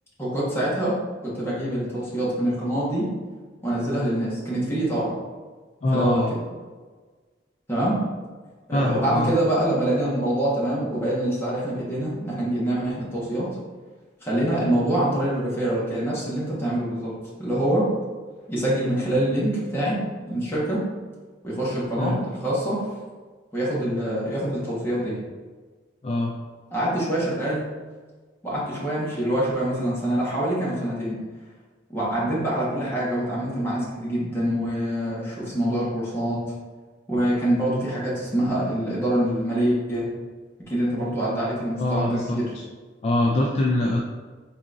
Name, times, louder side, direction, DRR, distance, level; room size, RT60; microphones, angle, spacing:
voice 1, 0.2-0.9 1.2-3.1 3.6-5.1 5.9-6.4 7.7-8.0 8.7-13.5 14.2-17.1 17.4-17.9 18.5-20.0 20.3-20.8 21.4-22.8 23.5-25.2 26.7-27.7 28.4-31.2 31.9-36.4 37.1-40.1 40.7-42.5, right 1 dB, 15° left, -8 dB, 1.3 m, -25 dB
voice 2, 5.8-6.3 8.7-9.3 22.0-22.2 26.0-26.3 41.8-42.6 43.0-44.0, left 1 dB, 35° left, 0 dB, 0.3 m, -23 dB
4.1 x 3.7 x 2.5 m, 1.4 s
head